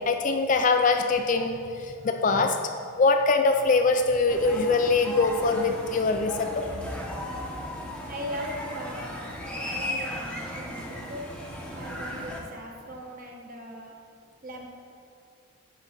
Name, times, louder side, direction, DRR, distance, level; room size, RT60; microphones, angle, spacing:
voice 1, 0.0-2.6 3.0-6.7, left 3 dB, 35° left, 5 dB, 0.3 m, -23 dB
sound 1, 4.3-12.4, left 1 dB, 5° left, 0.8 m, -36 dB
voice 2, 8.0-11.3 11.7-13.9 14.4-14.7, equal, 40° right, 0 dB, 1.0 m, -39 dB
8.3 x 3.9 x 6.5 m, 2.3 s
head